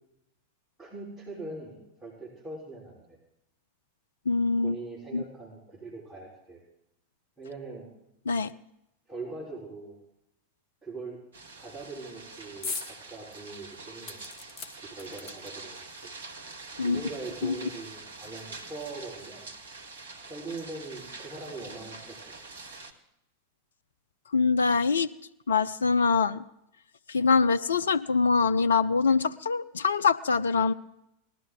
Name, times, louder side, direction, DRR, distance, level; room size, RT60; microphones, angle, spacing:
voice 1, 0.8-3.2 4.6-6.6 7.4-7.9 9.1-10.0 10.8-11.2 11.6-14.3 14.8-16.1 16.8-19.5 20.3-22.2, right 3 dB, 10° right, -7 dB, 4.1 m, -41 dB
voice 2, 4.3-4.8 5.1-5.2 8.3-8.5 16.8-17.0 17.4-17.6 24.3-25.1 25.5-26.4 27.1-30.7, left 4 dB, 70° left, 14 dB, 0.4 m, -24 dB
sound 1, 11.3-22.9, right 3 dB, 65° right, 1.4 m, -45 dB
sound 2, 12.6-12.9 13.3-13.4 14.1-15.7 16.6-16.7 17.0-17.1, left 4 dB, 35° left, 1.7 m, -39 dB
19.0 x 12.5 x 3.8 m, 0.81 s
figure-of-eight pair, 90°, 0 cm